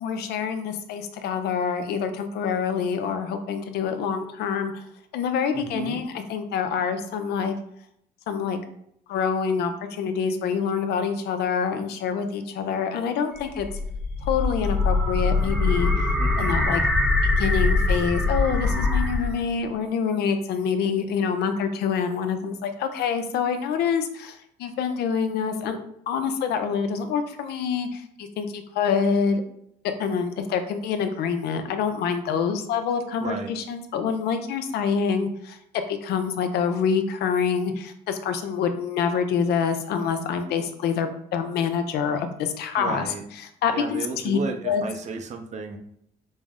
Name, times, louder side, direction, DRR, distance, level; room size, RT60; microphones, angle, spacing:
voice 1, 0.0-4.7 5.1-7.5 8.3-8.6 9.1-13.7 14.2-15.9 16.4-16.8 17.2-25.8 26.1-29.4 29.8-35.6 35.9-43.1 43.6-44.4 44.6-44.8, left 6 dB, 75° left, 7 dB, 0.5 m, -26 dB
voice 2, 5.5-6.0 16.2-16.6 33.2-33.5 42.8-43.2 43.7-45.8, right 4 dB, 45° right, 5 dB, 0.6 m, -33 dB
sound 1, 13.4-19.5, left 3 dB, ahead, 0.7 m, -23 dB
5.2 x 2.0 x 3.5 m, 0.72 s
cardioid pair, 110°, 17 cm